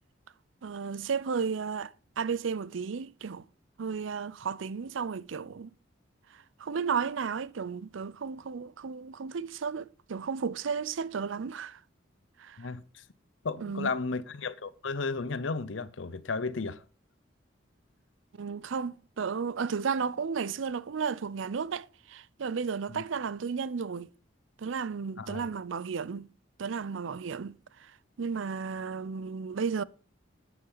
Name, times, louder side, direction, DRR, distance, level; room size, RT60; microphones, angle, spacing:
voice 1, 0.6-3.5 3.8-5.7 6.3-11.8 12.4-12.7 13.6-13.9 18.3-24.1 24.6-26.3 26.6-29.8, right 6 dB, 80° right, 0.5 m, -33 dB
voice 2, 12.6-13.0 13.4-16.8 22.9-23.0 25.2-25.5, left 4 dB, 80° left, 0.7 m, -34 dB
12.5 x 9.3 x 4.0 m
head